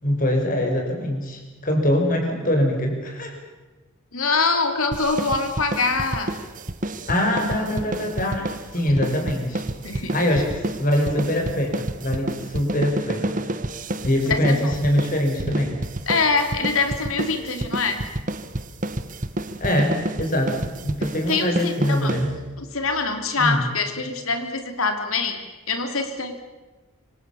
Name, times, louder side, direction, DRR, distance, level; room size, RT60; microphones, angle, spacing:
voice 1, 0.0-3.4 7.1-9.6 10.1-13.4 14.0-15.8 19.6-22.3 23.4-23.7, left 1 dB, 40° left, 3 dB, 5.3 m, -23 dB
voice 2, 4.1-6.3 9.8-10.1 14.3-14.7 16.1-18.0 21.3-21.7 22.0-22.1 22.7-25.4 25.7-26.4, left 4 dB, 80° left, 6 dB, 3.3 m, -24 dB
sound 1, 4.9-22.7, right 1 dB, 40° right, 1.3 m, -30 dB
26.5 x 24.5 x 7.2 m, 1.2 s
head